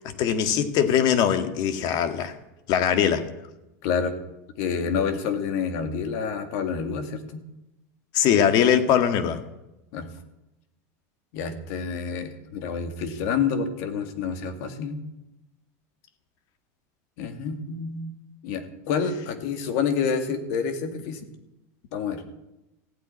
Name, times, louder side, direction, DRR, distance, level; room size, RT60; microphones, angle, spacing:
voice 1, 0.2-2.4 2.7-3.3 8.1-9.4, left 8 dB, 50° left, 1.8 m, -21 dB
voice 2, 3.8-4.1 4.6-7.4 9.9-10.1 11.3-15.0 17.2-18.1 18.4-21.2 21.9-22.2, left 6 dB, 65° left, 2.3 m, -28 dB
15.0 x 8.3 x 9.8 m
supercardioid pair, 130°, 9 cm